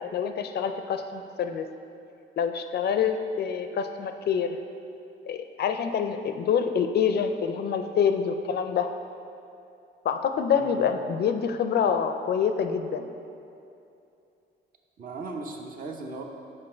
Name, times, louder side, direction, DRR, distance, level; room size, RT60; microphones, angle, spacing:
voice 1, 0.0-1.7 2.4-4.6 5.3-8.9 10.0-13.1, left 7 dB, 55° left, 7 dB, 0.4 m, -26 dB
voice 2, 15.0-16.2, right 3 dB, 45° right, 2 dB, 0.8 m, -37 dB
6.3 x 4.3 x 4.4 m, 2.7 s
cardioid pair, 90°, 20 cm